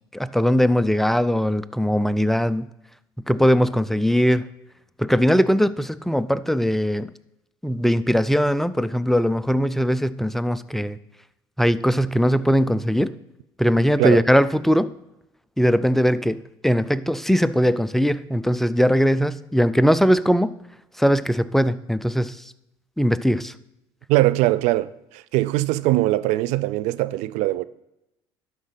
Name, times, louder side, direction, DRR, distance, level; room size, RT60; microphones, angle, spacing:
voice 1, 0.1-2.7 3.3-4.5 5.0-7.1 7.6-11.0 11.6-13.2 13.6-14.9 15.6-20.5 21.0-22.4 23.0-23.5, equal, ahead, 0.4 m, -20 dB
voice 2, 24.1-27.6, right 17 dB, 70° right, 0.4 m, -21 dB
11.5 x 4.9 x 5.8 m
hypercardioid pair, 70°, 12 cm